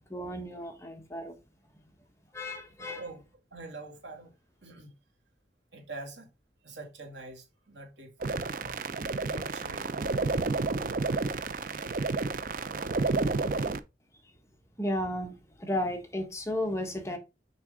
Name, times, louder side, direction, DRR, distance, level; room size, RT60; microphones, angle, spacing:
voice 1, 0.1-1.4 2.3-3.0 14.8-17.2, left 1 dB, 15° left, 1.3 m, -33 dB
voice 2, 2.8-3.2 3.5-4.3 4.6-4.9 5.7-6.3 6.6-8.9 9.2-9.9, right 2 dB, 85° right, 2.4 m, -45 dB
sound 1, 8.2-13.8, right 3 dB, 50° right, 0.5 m, -30 dB
6.2 x 5.2 x 3.7 m
head